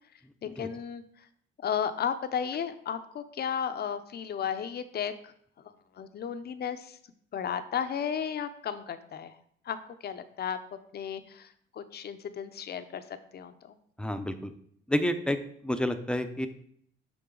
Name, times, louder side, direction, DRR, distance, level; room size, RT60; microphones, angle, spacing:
voice 1, 0.4-1.0 1.6-5.3 6.0-7.0 7.3-9.4 9.6-9.8 10.0-13.0 13.3-13.8, left 8 dB, 55° left, 10 dB, 0.7 m, -34 dB
voice 2, 14.0-14.5 14.9-15.4 15.6-16.5, left 1 dB, 5° left, 8 dB, 0.6 m, -29 dB
11.0 x 3.8 x 3.8 m, 0.65 s
cardioid pair, 90°, 20 cm